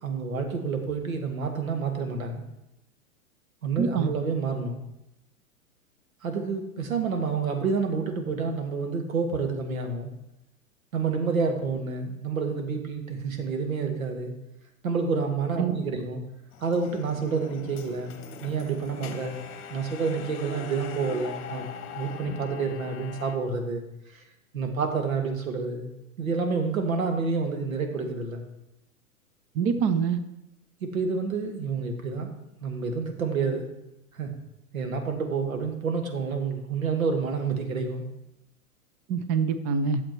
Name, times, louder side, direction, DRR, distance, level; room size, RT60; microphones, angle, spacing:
voice 1, 0.0-2.4 3.6-4.8 6.2-10.1 10.9-14.3 14.8-16.2 16.6-18.2 18.4-19.4 19.7-21.7 21.9-23.8 24.5-25.9 26.2-28.4 30.8-32.3 32.6-33.6 34.1-34.3 34.7-38.1, right 5 dB, 70° right, 4 dB, 2.0 m, -29 dB
voice 2, 3.8-4.1 15.6-15.8 29.5-30.2 39.1-40.0, right 6 dB, 20° right, 10 dB, 0.4 m, -25 dB
sound 1, 16.5-23.4, left 7 dB, 30° left, 1.2 m, -41 dB
11.5 x 7.3 x 4.5 m, 0.87 s
figure-of-eight pair, 105°, 43 cm